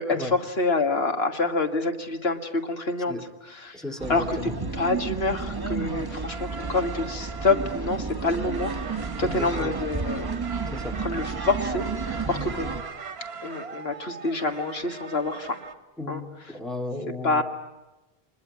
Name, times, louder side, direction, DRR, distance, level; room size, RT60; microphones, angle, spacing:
voice 1, 0.0-3.2 3.4-3.8 4.1-4.4 4.7-10.3 11.0-12.7 13.4-15.6 16.1-16.2 17.2-17.4, left 3 dB, 75° left, 5 dB, 1.9 m, -27 dB
voice 2, 3.7-4.5 9.2-9.8 10.7-11.0 16.0-17.4, left 2 dB, ahead, 3 dB, 2.0 m, -35 dB
sound 1, 4.0-12.8, right 4 dB, 25° right, 1.0 m, -32 dB
sound 2, 6.2-15.7, right 5 dB, 85° right, 1.4 m, -40 dB
26.5 x 21.0 x 9.5 m, 1.0 s
omnidirectional pair, 1.0 m